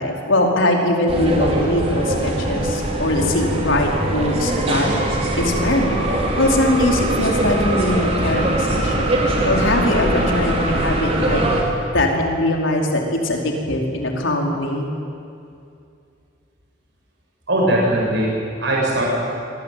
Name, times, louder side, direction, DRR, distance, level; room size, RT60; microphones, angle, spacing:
voice 1, 0.0-4.9 5.3-6.0 6.4-11.4 11.9-14.9, left 1 dB, 80° left, 1 dB, 4.7 m, -21 dB
sound 1, 1.1-11.6, right 1 dB, 30° right, 4.5 m, -22 dB
voice 2, 17.5-19.0, right 1 dB, 65° right, -3 dB, 8.0 m, -20 dB
26.0 x 22.5 x 9.5 m, 2.5 s
head